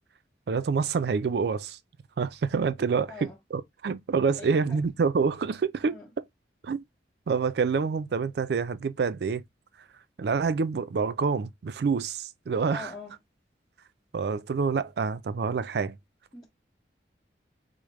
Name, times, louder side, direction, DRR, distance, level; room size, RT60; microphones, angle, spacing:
voice 1, 0.5-1.8 2.2-6.2 6.6-6.8 7.3-9.4 10.2-12.9 14.1-16.0, right 5 dB, 65° right, 0.4 m, -27 dB
voice 2, 4.4-4.8 5.8-6.0 12.7-13.1 16.3-16.5, left 3 dB, 20° left, 1.1 m, -43 dB
4.9 x 2.0 x 3.0 m
head